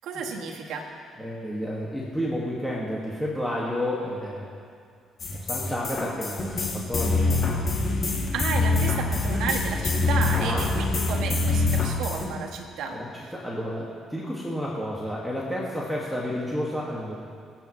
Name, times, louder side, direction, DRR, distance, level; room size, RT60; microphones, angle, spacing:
voice 1, 0.0-0.9 8.3-13.3, right 5 dB, 80° right, 1 dB, 1.7 m, -32 dB
voice 2, 1.2-4.5 5.3-7.7 10.4-10.7 12.9-17.1, equal, ahead, -5 dB, 2.0 m, -31 dB
sound 1, 5.2-12.3, left 3 dB, 45° left, 2.1 m, -25 dB
25.5 x 9.0 x 3.2 m, 2.3 s
cardioid pair, 95°, 0 cm